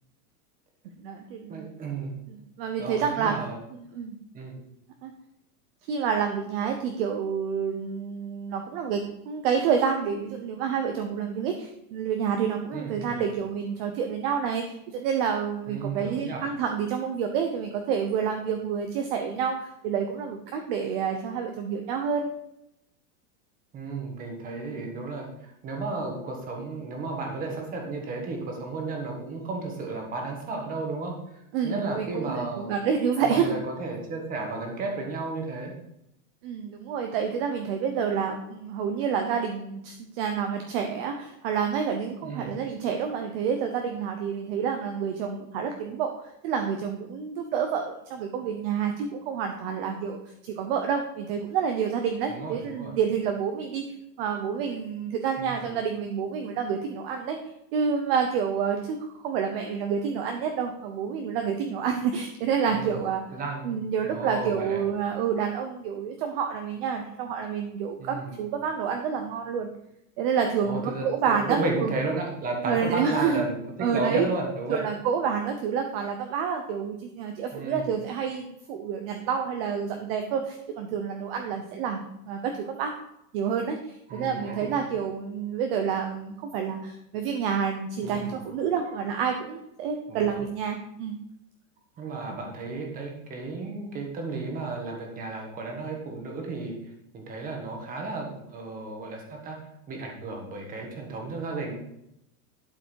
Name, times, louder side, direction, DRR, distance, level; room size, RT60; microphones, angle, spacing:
voice 1, 1.0-1.7 2.3-3.3 3.7-4.2 5.0-5.1 5.9-22.3 24.7-24.8 31.5-33.5 36.4-46.1 46.4-53.8 54.2-57.4 57.7-63.2 63.6-69.7 70.2-71.9 72.7-73.4 73.8-74.3 74.7-82.0 82.2-82.9 83.3-91.2, right 7 dB, 40° right, 4 dB, 0.8 m, -28 dB
voice 2, 1.5-2.1 2.8-3.6 4.3-4.5 12.7-13.3 15.7-16.4 23.7-32.7 33.2-35.7 42.2-42.5 52.3-52.9 55.4-55.7 62.7-63.0 63.3-63.8 64.0-64.8 68.0-68.4 70.6-74.8 77.5-77.9 84.1-84.7 88.0-88.4 88.8-89.0 90.1-90.4 92.0-99.6 99.9-101.7, right 3 dB, 20° right, 1 dB, 1.5 m, -33 dB
11.5 x 4.8 x 4.6 m, 0.81 s
supercardioid pair, 175°, 46 cm